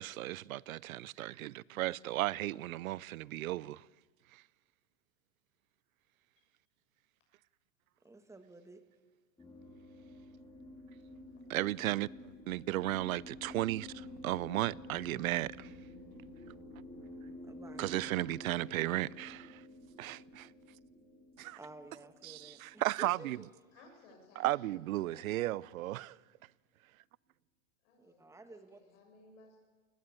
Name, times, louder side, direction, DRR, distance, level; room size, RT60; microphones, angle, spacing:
voice 1, 0.0-3.8 4.3-4.4 11.5-12.1 12.5-15.7 17.8-19.6 20.0-20.5 21.4-21.6 22.2-23.4 24.4-26.2, right 16 dB, 90° right, 0.6 m, -35 dB
voice 2, 8.0-8.9 17.5-17.9 21.6-23.5 28.0-28.8, right 2 dB, 5° right, 1.2 m, -53 dB
sound 1, 9.4-24.0, left 1 dB, 10° left, 3.3 m, -51 dB
voice 3, 22.9-23.3 23.7-25.8 27.8-28.2 28.5-29.6, left 2 dB, 60° left, 6.6 m, -60 dB
18.0 x 15.0 x 9.6 m
supercardioid pair, 140°, 40 cm